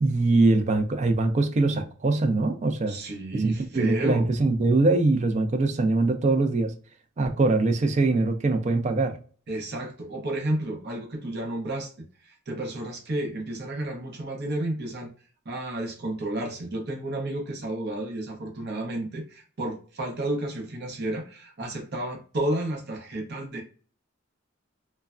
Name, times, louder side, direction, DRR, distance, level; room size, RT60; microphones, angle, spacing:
voice 1, 0.0-3.0 3.3-6.7 7.2-9.2, right 2 dB, 35° right, 0.4 m, -23 dB
voice 2, 2.9-4.3 9.5-11.9 12.5-15.1 15.5-23.6, right 1 dB, 55° right, 0.8 m, -31 dB
3.2 x 2.1 x 2.4 m
head